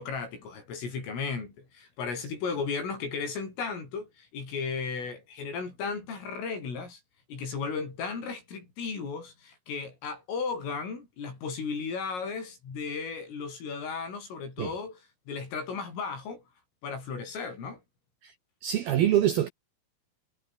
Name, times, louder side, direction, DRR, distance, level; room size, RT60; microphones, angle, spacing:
voice 1, 0.0-7.0 7.3-15.0 15.3-16.4 16.8-17.8, left 5 dB, 70° left, 10.5 m, -35 dB
voice 2, 18.6-19.5, right 11 dB, 70° right, 2.5 m, -24 dB
omnidirectional pair, 6.0 m